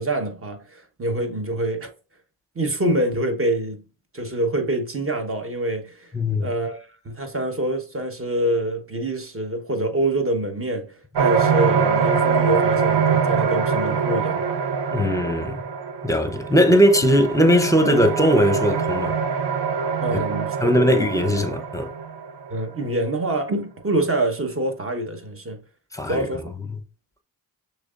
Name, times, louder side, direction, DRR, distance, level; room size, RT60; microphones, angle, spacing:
voice 1, 0.0-1.9 2.5-3.8 4.1-6.1 6.4-10.9 11.2-14.4 20.0-21.0 22.5-25.6 26.1-26.5, right 1 dB, 30° right, 1.2 m, -26 dB
voice 2, 6.1-6.5 14.9-15.6 16.0-19.2 20.6-21.9 25.9-26.3, equal, 10° left, 0.8 m, -19 dB
sound 1, 11.1-22.6, right 6 dB, 70° right, 0.7 m, -24 dB
6.2 x 3.3 x 2.5 m
cardioid pair, 60°, 42 cm